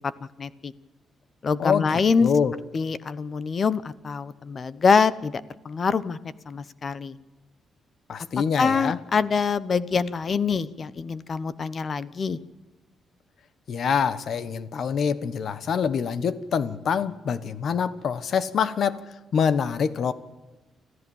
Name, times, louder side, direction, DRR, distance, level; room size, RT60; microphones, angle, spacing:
voice 1, 0.4-0.7 1.4-2.3 2.7-6.2 6.5-7.2 8.6-12.4, left 5 dB, 40° left, 17 dB, 0.9 m, -24 dB
voice 2, 1.6-2.5 8.1-9.0 13.7-19.0 19.3-20.1, left 6 dB, 60° left, 15 dB, 1.2 m, -25 dB
25.0 x 14.5 x 7.2 m, 1.1 s
cardioid pair, 120°, 0 cm